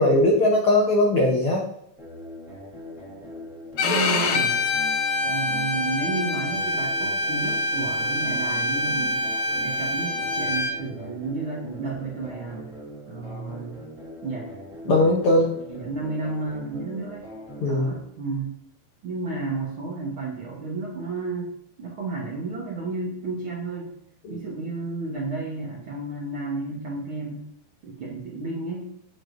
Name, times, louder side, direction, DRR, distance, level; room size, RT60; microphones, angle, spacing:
voice 1, 0.0-1.6 14.9-15.5 17.6-17.9 24.2-24.4, left 1 dB, 90° left, 0 dB, 1.1 m, -19 dB
sound 1, 2.0-18.0, equal, ahead, 2.8 m, -41 dB
Bowed string instrument, 3.8-10.7, left 2 dB, 70° left, 1.8 m, -25 dB
voice 2, 3.8-4.6 5.2-12.7 13.1-13.8 14.2-14.5 14.8-15.0 15.7-17.3 17.6-18.6 19.0-23.9 24.3-27.4 27.8-28.9, right 3 dB, 60° right, -3 dB, 1.3 m, -32 dB
8.5 x 8.1 x 2.6 m, 0.76 s
omnidirectional pair, 3.9 m